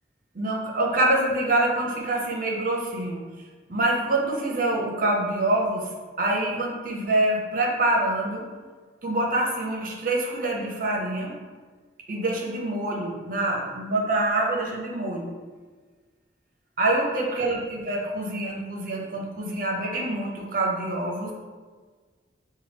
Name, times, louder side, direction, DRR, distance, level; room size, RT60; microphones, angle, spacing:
voice 1, 0.3-3.2 3.7-5.9 6.2-8.4 9.0-11.3 12.1-15.3 16.8-21.3, right 2 dB, 45° right, -1 dB, 0.7 m, -25 dB
6.5 x 2.2 x 3.4 m, 1.5 s
head